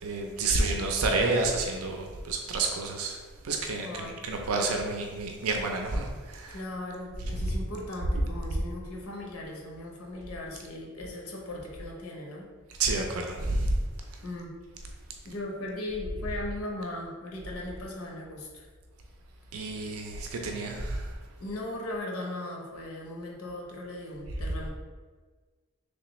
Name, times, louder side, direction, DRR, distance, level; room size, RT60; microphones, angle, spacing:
voice 1, 0.0-3.2 3.4-3.9 4.2-6.6 12.8-13.8 19.5-21.1, right 3 dB, 80° right, 2 dB, 0.5 m, -29 dB
voice 2, 3.8-4.2 6.5-12.5 14.2-14.5 15.2-18.7 21.4-24.7, left 1 dB, 90° left, -1 dB, 0.8 m, -38 dB
3.3 x 3.2 x 3.0 m, 1.4 s
head